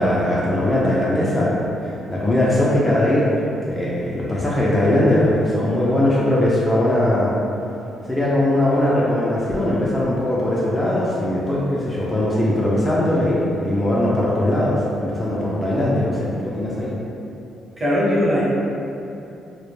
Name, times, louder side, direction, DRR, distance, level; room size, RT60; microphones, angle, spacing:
voice 1, 0.0-7.4 8.1-17.0, left 1 dB, 15° left, -7 dB, 0.4 m, -20 dB
voice 2, 17.8-18.4, equal, 30° right, -8 dB, 0.8 m, -19 dB
2.1 x 2.1 x 3.0 m, 2.7 s
cardioid pair, 90°, 0 cm